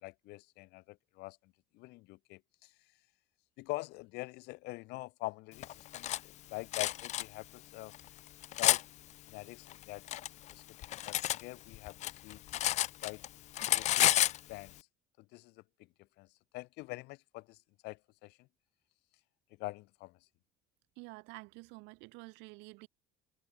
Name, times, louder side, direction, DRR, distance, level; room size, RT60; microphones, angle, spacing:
voice 1, 0.0-2.7 3.6-7.9 8.6-8.8 9.3-10.0 10.5-10.6 11.0-12.0 12.2-13.2 13.7-14.2 14.5-14.9 15.2-15.6 16.2-16.3 16.5-18.5 19.6-20.2, left 22 dB, 70° left, 2.5 m, -44 dB
Cutlery silverware, 5.6-6.2 6.7-7.2 7.9-8.8 9.7-11.4 11.7-13.3 13.5-14.4, left 14 dB, 40° left, 0.6 m, -30 dB
voice 2, 21.0-22.9, right 28 dB, 85° right, 7.2 m, -49 dB
cardioid pair, 165°, 18 cm